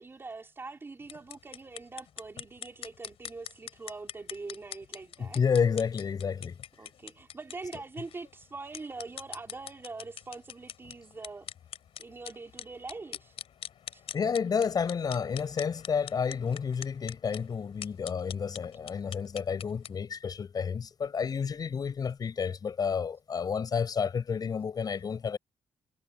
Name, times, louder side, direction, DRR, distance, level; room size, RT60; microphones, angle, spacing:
voice 1, 0.0-5.4 6.8-11.5 12.0-13.3 13.9-14.0, right 3 dB, 20° right, 3.8 m, -43 dB
sound 1, 1.0-20.0, left 10 dB, 65° left, 4.9 m, -45 dB
voice 2, 5.2-6.6 14.1-25.4, left 6 dB, 40° left, 7.0 m, -30 dB
wide cardioid pair, 160°, 10 cm